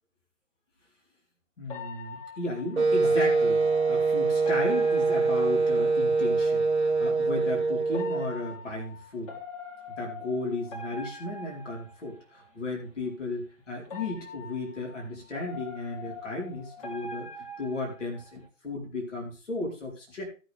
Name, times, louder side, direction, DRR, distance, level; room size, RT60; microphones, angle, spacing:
voice 1, 1.6-9.3 10.0-20.2, left 2 dB, 65° left, -2 dB, 4.5 m, -35 dB
sound 1, 1.7-6.3 7.9-12.5 13.8-18.5, left 2 dB, 25° left, 1.7 m, -43 dB
Wind instrument woodwind instrument, 2.8-8.4, right 4 dB, 60° right, 1.2 m, -24 dB
18.0 x 6.4 x 3.5 m, 0.33 s
figure-of-eight pair, 135°, 40 cm